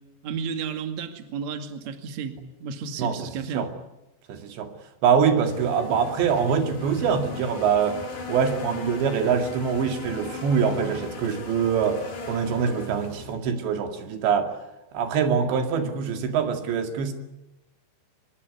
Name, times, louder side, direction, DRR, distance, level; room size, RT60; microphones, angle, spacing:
voice 1, 0.2-3.7, right 6 dB, 45° right, 8 dB, 3.0 m, -32 dB
voice 2, 4.3-4.7 5.0-8.0 8.3-12.0 12.3-14.5 14.9-17.1, right 6 dB, 70° right, 7 dB, 4.4 m, -24 dB
sound 1, 5.4-13.3, left 3 dB, 45° left, 6.2 m, -37 dB
25.0 x 20.0 x 9.6 m, 0.95 s
omnidirectional pair, 5.4 m